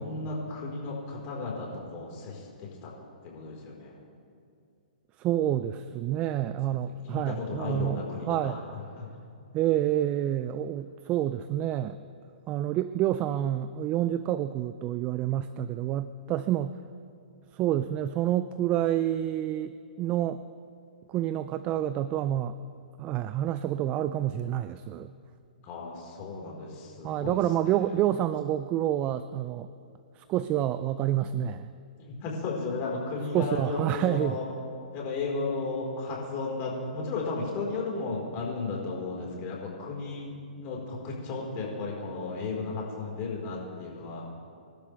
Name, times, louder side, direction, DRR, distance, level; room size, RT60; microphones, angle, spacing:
voice 1, 0.0-2.9 3.2-4.0 6.8-8.6 9.0-9.1 25.6-27.4 32.0-34.4 34.9-40.3 40.6-44.2, left 3 dB, 35° left, -2 dB, 4.6 m, -34 dB
voice 2, 5.2-8.0 8.3-8.6 9.5-12.0 12.5-16.8 17.5-20.4 21.1-22.5 23.0-25.1 27.0-29.7 30.2-31.7 33.3-34.4, right 12 dB, 25° right, 13 dB, 0.4 m, -28 dB
26.5 x 12.0 x 3.5 m, 2.4 s
hypercardioid pair, 135°, 5 cm